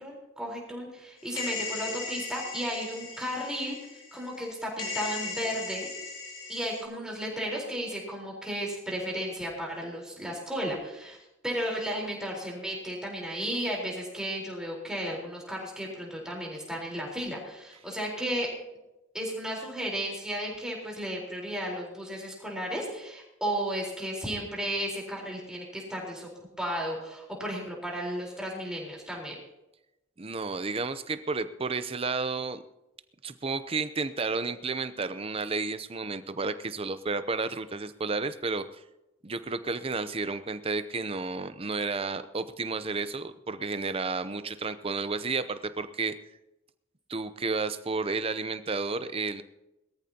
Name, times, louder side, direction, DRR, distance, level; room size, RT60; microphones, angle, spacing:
voice 1, 0.0-5.9 6.5-11.2 11.4-18.5 19.1-26.3 26.6-29.4, equal, 5° right, -2 dB, 4.1 m, -34 dB
sound 1, 1.4-4.5 4.8-6.8, left 4 dB, 90° left, 3.8 m, -37 dB
voice 2, 30.2-32.6 33.2-38.6 39.2-46.2 47.1-49.4, right 4 dB, 30° right, 12 dB, 0.7 m, -32 dB
21.0 x 14.0 x 2.9 m, 0.95 s
head